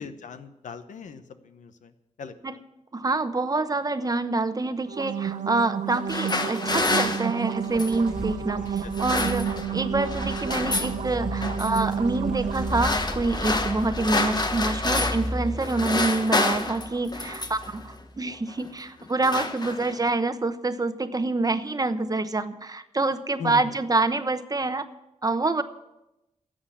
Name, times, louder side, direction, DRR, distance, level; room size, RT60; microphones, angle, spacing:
voice 1, 0.0-1.9 2.2-2.6 8.5-8.9 23.4-23.7, left 6 dB, 85° left, 10 dB, 0.9 m, -39 dB
voice 2, 2.9-24.9 25.2-25.6, right 3 dB, 30° right, 10 dB, 0.9 m, -26 dB
sound 1, 4.8-12.8, right 8 dB, 85° right, 0.8 m, -31 dB
sound 2, 5.9-8.1 8.8-9.8 10.0-11.0 11.4-11.8 12.5-15.3 15.6-17.7 18.5-18.7 19.0-20.1, left 2 dB, 35° left, 1.3 m, -28 dB
sound 3, 7.5-18.3, equal, 5° right, 0.8 m, -36 dB
11.5 x 7.6 x 8.4 m, 0.94 s
cardioid pair, 70°, 12 cm